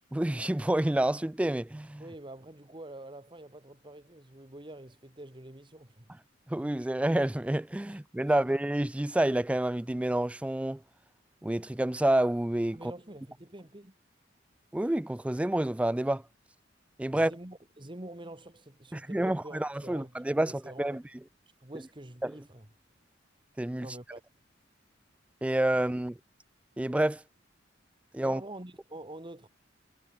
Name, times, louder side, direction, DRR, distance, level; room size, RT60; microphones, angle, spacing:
voice 1, 0.1-2.0 6.5-10.8 11.4-12.8 14.7-16.2 17.0-17.3 18.9-21.0 22.2-22.4 23.6-23.9 25.4-26.2 26.8-27.2 28.1-28.4, right 1 dB, 5° right, 0.3 m, -28 dB
voice 2, 2.0-6.1 7.9-8.0 8.3-8.4 12.7-13.9 17.1-20.1 20.4-21.0 21.6-22.7 23.8-24.2 28.2-29.5, right 1 dB, 25° right, 1.9 m, -46 dB
head